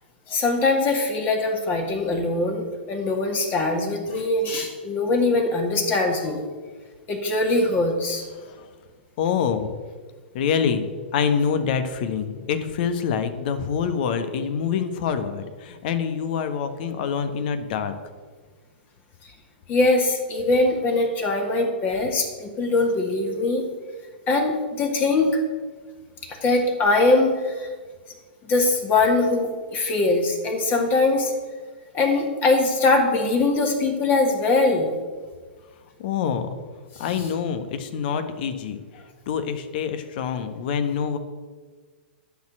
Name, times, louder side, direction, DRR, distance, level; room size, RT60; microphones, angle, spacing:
voice 1, 0.3-6.4 7.1-8.2 19.7-23.6 24.3-25.4 26.4-27.7 28.5-31.3 31.9-34.9 37.1-37.3, left 2 dB, 30° left, 2 dB, 2.0 m, -22 dB
voice 2, 9.2-9.7 10.3-10.9 11.1-17.9 36.0-36.5 37.0-38.8 39.3-41.2, left 7 dB, 55° left, 9 dB, 1.3 m, -25 dB
10.5 x 6.5 x 7.6 m, 1.5 s
figure-of-eight pair, 110°, 6 cm